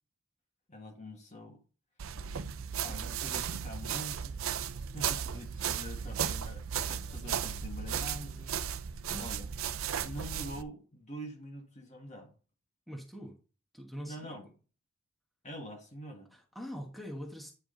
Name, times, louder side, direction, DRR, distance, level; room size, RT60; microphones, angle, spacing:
voice 1, 0.7-1.6 2.8-4.4 4.9-8.6 9.2-9.5 10.0-12.3 14.1-14.5 15.4-16.3, equal, 35° left, 1.8 m, -45 dB
sound 1, 2.0-10.6, right 8 dB, 75° right, 0.6 m, -35 dB
voice 2, 12.9-13.4 13.7-14.4 16.3-17.5, equal, ahead, 1.3 m, -43 dB
9.2 x 4.7 x 3.9 m
head